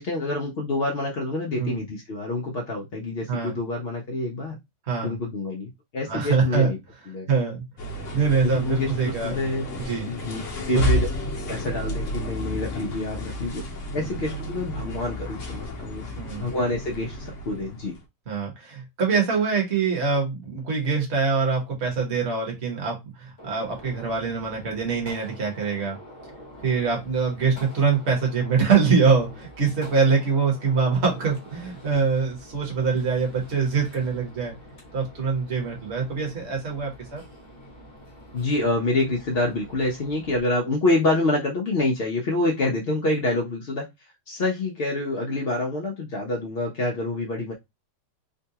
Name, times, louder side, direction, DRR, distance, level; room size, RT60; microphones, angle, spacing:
voice 1, 0.0-4.6 5.0-6.8 7.1-7.3 8.4-8.9 9.2-9.7 10.0-10.4 10.7-11.1 11.5-13.6 13.9-16.0 16.4-17.9 38.3-43.8 44.3-47.5, left 2 dB, 80° left, -1 dB, 0.5 m, -27 dB
voice 2, 6.1-6.7 7.3-7.6 8.1-9.4 9.8-10.1 10.7-11.0 13.9-14.2 16.2-16.5 18.3-26.0 26.6-34.5 34.9-37.2, right 5 dB, 40° right, 0 dB, 1.2 m, -24 dB
sound 1, 7.8-18.0, equal, 55° left, 0.9 m, -31 dB
Gunshot gunfire, 23.4-40.4, equal, 25° left, 0.7 m, -46 dB
3.7 x 2.3 x 2.7 m, 0.20 s
omnidirectional pair, 1.9 m